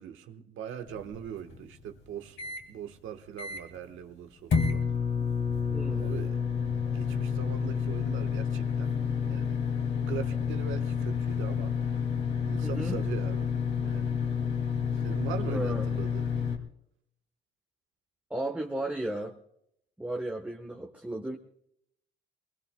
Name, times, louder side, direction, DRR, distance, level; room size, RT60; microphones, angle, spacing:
voice 1, 0.0-2.4 2.7-4.8 5.9-6.4 6.9-9.0 9.3-9.6 10.1-11.8 12.4-13.5 13.8-14.1 15.0-16.2, right 9 dB, 85° right, 1.3 m, -40 dB
sound 1, 0.9-2.6 3.1-3.2 3.4-3.8 4.5-16.6, left 6 dB, 65° left, 2.5 m, -30 dB
voice 2, 5.7-6.1 12.6-13.0 15.4-15.9 18.3-19.4 20.0-21.4, right 1 dB, 5° right, 1.1 m, -34 dB
21.5 x 21.5 x 2.2 m
cardioid pair, 90°, 20 cm